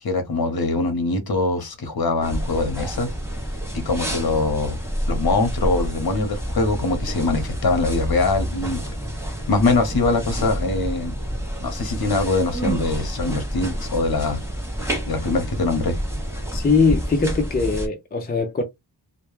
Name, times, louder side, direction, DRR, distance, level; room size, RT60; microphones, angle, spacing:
voice 1, 0.0-3.1 3.7-4.8 5.1-8.9 9.5-11.1 11.6-14.4 15.1-16.0, left 3 dB, 50° left, 0.8 m, -23 dB
sound 1, 2.2-17.9, equal, 5° right, 0.7 m, -28 dB
voice 2, 16.5-18.6, left 4 dB, 25° left, 0.3 m, -21 dB
2.2 x 2.1 x 3.0 m
wide cardioid pair, 140°, 48 cm